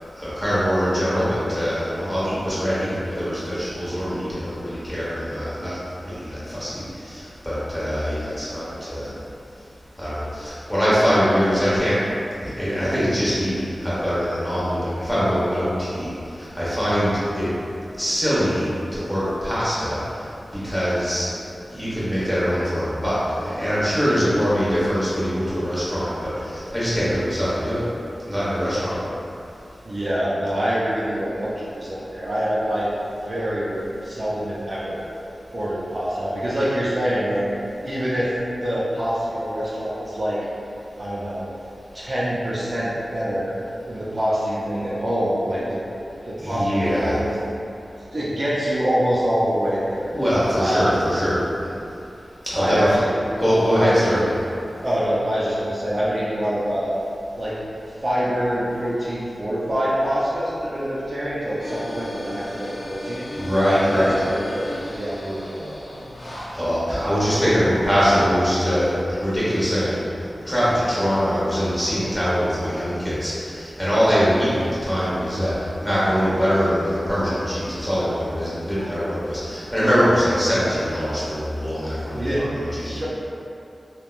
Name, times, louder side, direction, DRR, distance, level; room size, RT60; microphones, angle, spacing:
voice 1, 0.1-5.8 6.0-9.1 10.0-12.0 12.4-16.1 16.4-17.5 18.0-20.3 20.6-21.3 21.7-27.8 28.3-28.9 46.4-47.2 50.1-51.4 52.5-52.9 53.3-54.2 63.3-64.3 66.5-70.0 70.5-83.1, equal, 5° left, -11 dB, 1.1 m, -23 dB
voice 2, 29.8-32.9 33.3-35.0 35.5-37.4 37.8-38.3 38.6-40.4 41.0-41.4 41.9-43.5 43.9-45.8 46.2-47.3 48.0-50.1 50.6-50.9 52.6-54.3 54.8-56.9 57.4-57.6 58.0-63.3 63.6-64.7 65.0-65.8 78.8-78.9 82.1-82.5 82.8-83.1, equal, 40° right, -9 dB, 0.4 m, -25 dB
sound 1, 61.6-69.4, left 1 dB, 50° left, 0.5 m, -36 dB
3.4 x 2.2 x 2.4 m, 2.7 s
wide cardioid pair, 80°, 0 cm